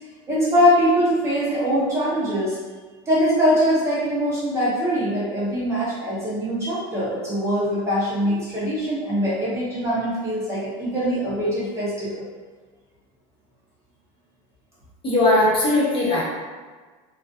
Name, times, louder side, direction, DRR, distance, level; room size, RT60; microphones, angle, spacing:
voice 1, 0.3-2.6 3.1-12.3, equal, 15° right, -9 dB, 0.6 m, -22 dB
voice 2, 15.0-16.2, left 1 dB, 30° left, -7 dB, 0.8 m, -19 dB
2.3 x 2.3 x 2.5 m, 1.4 s
cardioid pair, 155°, 17 cm